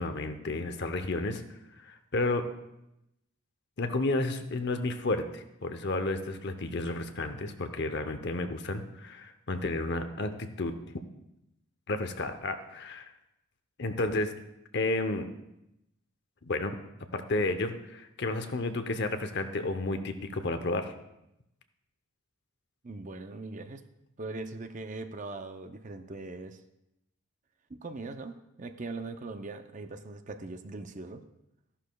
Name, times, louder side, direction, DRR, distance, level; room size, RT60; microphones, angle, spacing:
voice 1, 0.0-1.4 1.8-2.5 3.8-10.7 11.9-13.1 13.8-14.3 14.7-15.3 16.4-16.8 17.1-20.9, left 2 dB, 50° left, 8 dB, 0.8 m, -31 dB
voice 2, 22.8-23.8 24.2-26.6 27.7-31.2, right 3 dB, 35° right, 8 dB, 0.5 m, -40 dB
14.0 x 11.5 x 2.3 m, 0.86 s
head